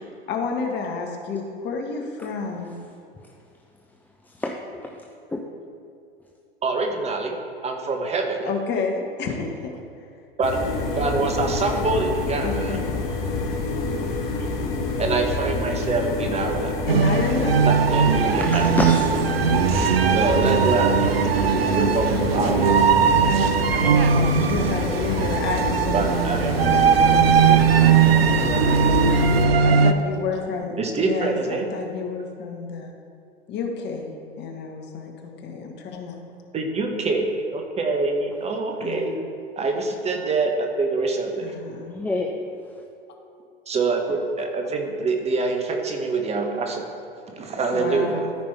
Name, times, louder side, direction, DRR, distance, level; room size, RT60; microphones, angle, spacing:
voice 1, 0.3-2.7 8.4-9.8 12.4-13.0 16.9-17.7 22.6-23.3 23.6-26.1 26.6-27.9 29.6-32.9 33.5-35.1 35.4-36.2 38.8-39.2 41.4-42.0 47.7-48.4, left 5 dB, 35° left, 2 dB, 1.3 m, -30 dB
voice 2, 4.3-5.0 5.3-5.4 16.5-16.7 18.4-19.2 41.9-42.3, left 2 dB, 5° left, 1 dB, 0.5 m, -28 dB
voice 3, 6.6-7.4 7.6-8.5 10.4-10.6 10.9-12.8 15.0-16.7 17.7-18.7 20.1-21.2 21.8-22.8 25.9-26.4 30.8-31.7 36.5-39.2 39.6-41.5 43.7-46.9 47.3-48.2, right 3 dB, 20° right, 3 dB, 1.0 m, -25 dB
sound 1, 10.4-29.5, left 3 dB, 55° left, 1.4 m, -27 dB
sound 2, 16.9-29.9, right 6 dB, 75° right, 0.6 m, -19 dB
13.5 x 5.1 x 3.4 m, 2.5 s
figure-of-eight pair, 90°, 30 cm